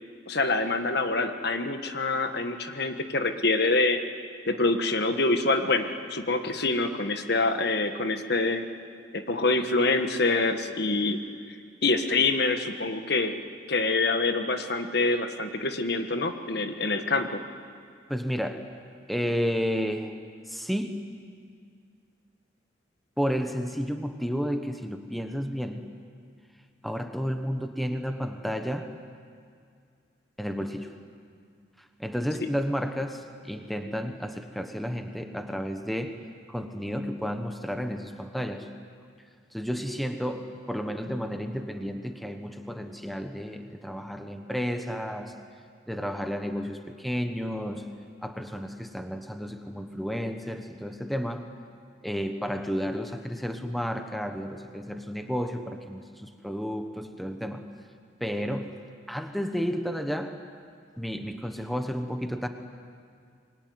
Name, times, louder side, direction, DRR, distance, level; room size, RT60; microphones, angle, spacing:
voice 1, 0.3-4.0 4.5-8.6 9.1-11.2 11.8-13.3 13.7-17.4, left 3 dB, 60° left, 7 dB, 1.6 m, -26 dB
voice 2, 18.1-18.6 19.1-20.1 20.5-20.9 23.2-25.8 26.8-28.9 30.4-30.9 32.0-36.1 36.5-38.7 39.5-45.3 45.9-47.8 48.2-51.5 52.0-57.6 58.2-58.7 59.1-60.3 61.0-62.5, equal, ahead, 6 dB, 1.2 m, -32 dB
26.0 x 23.0 x 9.6 m, 2.2 s
head